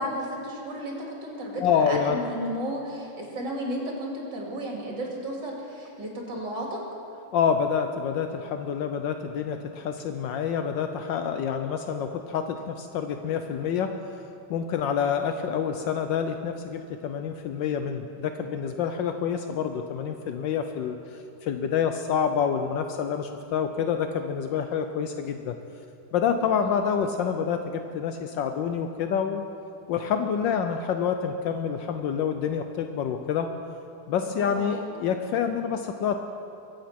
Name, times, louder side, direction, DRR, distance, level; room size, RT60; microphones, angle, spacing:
voice 1, 0.0-6.8 26.6-26.9 34.4-34.8, equal, 65° right, -1 dB, 3.6 m, -33 dB
voice 2, 1.6-2.2 7.3-14.0 14.5-21.0 21.4-25.6 26.1-29.4 29.9-33.5 34.1-36.2, left 7 dB, 75° left, 7 dB, 1.3 m, -27 dB
22.5 x 8.5 x 5.9 m, 2.6 s
omnidirectional pair, 2.1 m